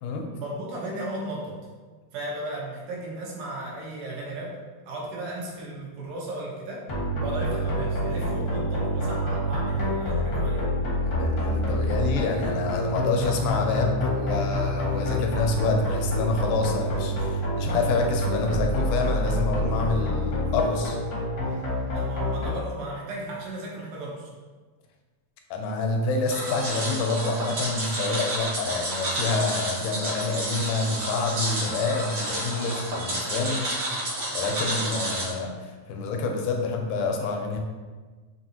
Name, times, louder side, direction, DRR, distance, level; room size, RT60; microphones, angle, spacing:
voice 1, 0.3-1.6 2.1-4.6 4.8-6.9 7.2-10.7 21.9-24.3, right 1 dB, 90° right, -3 dB, 2.4 m, -35 dB
sound 1, 6.9-22.5, equal, 65° left, 1.0 m, -27 dB
voice 2, 11.1-21.0 25.5-33.8 34.3-37.6, left 3 dB, 90° left, 3 dB, 2.1 m, -27 dB
sound 2, 26.3-35.3, right 1 dB, 60° right, 1.4 m, -30 dB
5.3 x 2.6 x 2.8 m, 1.4 s
omnidirectional pair, 3.5 m